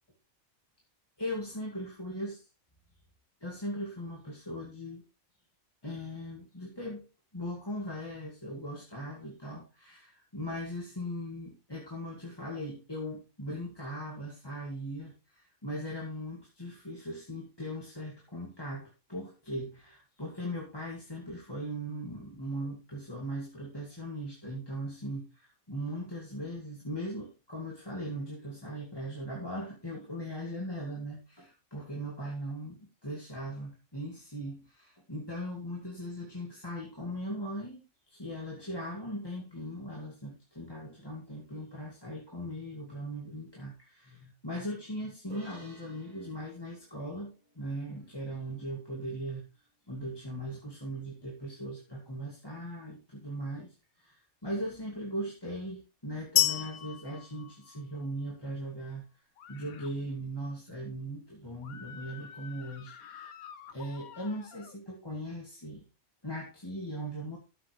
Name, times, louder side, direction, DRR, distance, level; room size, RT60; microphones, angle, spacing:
voice 1, 1.2-2.4 3.4-5.0 5.8-7.0 7.3-37.8 38.1-49.4 49.9-59.0 59.5-63.3 63.7-65.8 66.2-67.4, equal, 15° left, -2 dB, 2.3 m, -39 dB
sound 1, 45.3-48.8, right 2 dB, 90° right, 3.5 m, -57 dB
sound 2, 56.4-58.3, left 13 dB, 60° left, 0.9 m, -30 dB
sound 3, 59.4-59.9 61.6-64.8, left 8 dB, 90° left, 1.4 m, -49 dB
13.0 x 7.6 x 3.3 m, 0.29 s
omnidirectional pair, 1.4 m